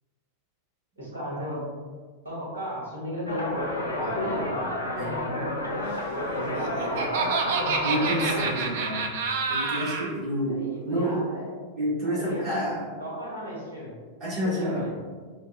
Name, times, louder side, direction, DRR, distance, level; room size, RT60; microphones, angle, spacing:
voice 1, 1.0-1.6 2.2-3.6 3.9-4.5 6.2-7.1 10.5-11.5 12.0-12.6 13.0-14.0 14.4-14.9, equal, 75° right, -6 dB, 1.3 m, -35 dB
sound 1, 3.3-8.5, left 1 dB, 85° left, 0.5 m, -30 dB
voice 2, 4.0-4.5 4.9-5.5 7.8-9.1 9.5-11.2 11.8-12.9 14.2-14.8, equal, 35° right, -7 dB, 1.5 m, -29 dB
Laughter, 6.3-10.1, right 4 dB, 55° right, 0.4 m, -28 dB
4.4 x 2.1 x 2.7 m, 1.5 s
figure-of-eight pair, 90°, 0 cm